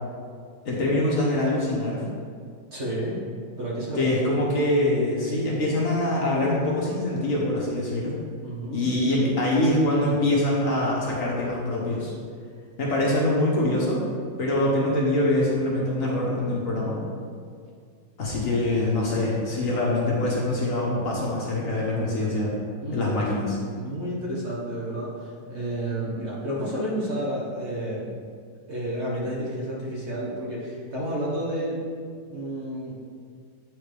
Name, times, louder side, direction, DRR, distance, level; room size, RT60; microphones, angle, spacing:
voice 1, 0.6-2.0 3.9-8.1 8.7-12.1 12.8-14.0 14.4-17.0 18.2-22.6 22.9-23.6, left 1 dB, 55° left, -4 dB, 1.2 m, -24 dB
voice 2, 2.7-3.2 3.6-4.0 8.4-8.9 19.6-19.7 22.8-23.3 23.7-28.2 28.7-31.8 32.3-32.9, right 1 dB, 45° right, -6 dB, 1.2 m, -31 dB
8.9 x 3.8 x 3.4 m, 2.1 s
omnidirectional pair, 1.9 m